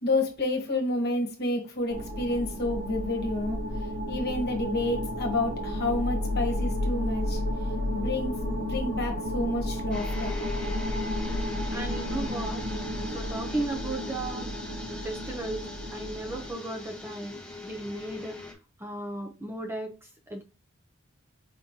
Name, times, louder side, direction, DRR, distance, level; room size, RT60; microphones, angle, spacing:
voice 1, 0.0-3.6 4.1-7.4 7.9-10.4, left 2 dB, 50° left, 1 dB, 1.3 m, -29 dB
sound 1, 1.9-16.5, left 1 dB, 70° right, 1.2 m, -32 dB
sound 2, 9.9-18.5, left 2 dB, 5° left, 0.9 m, -41 dB
voice 2, 11.7-12.6 13.1-14.5 15.0-18.4 18.8-19.9 20.3-20.4, right 2 dB, 10° right, 2 dB, 0.6 m, -35 dB
5.0 x 3.1 x 2.7 m, 0.32 s
head